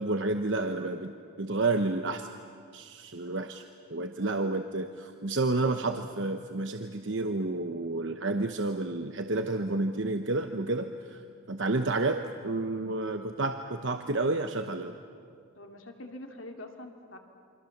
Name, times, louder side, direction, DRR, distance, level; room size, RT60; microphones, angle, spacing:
voice 1, 0.0-2.3 2.7-3.6 3.9-11.2 11.5-14.9, right 2 dB, 65° right, 6 dB, 1.0 m, -30 dB
voice 2, 10.8-11.1 15.6-17.2, left 1 dB, 80° left, 3 dB, 2.8 m, -45 dB
28.5 x 25.0 x 7.4 m, 2.2 s
head